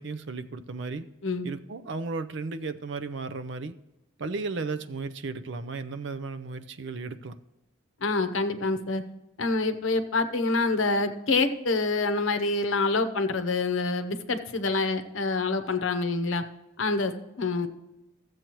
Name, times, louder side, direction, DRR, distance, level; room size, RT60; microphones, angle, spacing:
voice 1, 0.0-1.1 1.4-3.7 4.2-7.4, right 3 dB, 60° right, 10 dB, 0.5 m, -34 dB
voice 2, 8.0-9.0 9.4-16.4 16.8-17.1 17.4-17.7, left 3 dB, 70° left, 9 dB, 0.8 m, -26 dB
14.0 x 7.8 x 3.0 m, 0.99 s
head